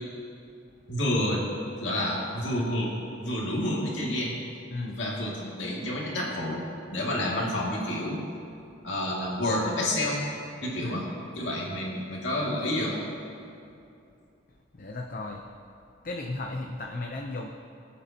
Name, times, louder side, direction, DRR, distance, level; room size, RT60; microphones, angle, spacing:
voice 1, 0.9-1.4 1.8-2.9 3.2-4.4 4.9-6.6 6.9-8.2 8.8-10.2 10.6-11.1 11.4-13.0, left 1 dB, 70° left, -5 dB, 2.4 m, -29 dB
voice 2, 14.7-15.5 16.0-17.5, left 2 dB, 45° left, 1 dB, 0.7 m, -35 dB
24.5 x 8.5 x 2.9 m, 2.6 s
head